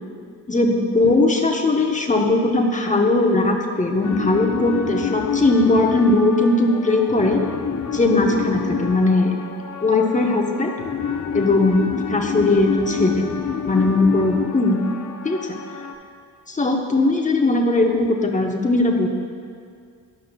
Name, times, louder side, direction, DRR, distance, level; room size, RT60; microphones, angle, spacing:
voice 1, 0.5-7.4 7.9-9.3 9.8-10.8 11.3-13.3 13.6-14.8 15.2-15.4 16.5-19.1, left 2 dB, 15° left, 1 dB, 1.0 m, -19 dB
sound 1, 4.0-15.9, left 7 dB, 40° left, 0.7 m, -28 dB
12.0 x 5.4 x 2.3 m, 2.1 s
hypercardioid pair, 40°, 47 cm